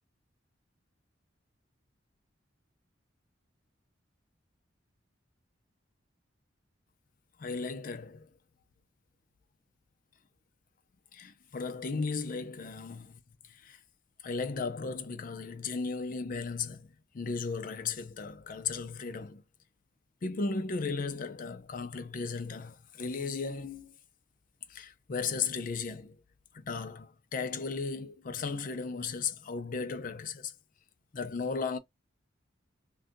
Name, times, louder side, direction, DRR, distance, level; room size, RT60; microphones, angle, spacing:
voice 1, 7.4-8.3 11.1-13.2 13.5-13.8 14.2-16.9 17.1-19.4 20.2-23.9 24.7-26.2 26.5-30.5 31.1-31.8, left 4 dB, 45° left, 0.4 m, -35 dB
2.6 x 2.3 x 3.6 m
head